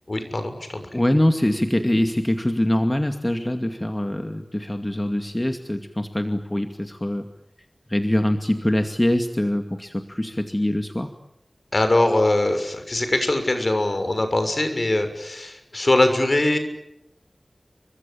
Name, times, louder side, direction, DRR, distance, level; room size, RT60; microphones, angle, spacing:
voice 1, 0.1-0.8 11.7-16.6, left 2 dB, 50° left, 8 dB, 6.6 m, -22 dB
voice 2, 0.9-7.3 7.9-11.1, left 1 dB, 20° left, 6 dB, 2.3 m, -23 dB
29.5 x 25.0 x 7.3 m, 0.82 s
wide cardioid pair, 55°, 0 cm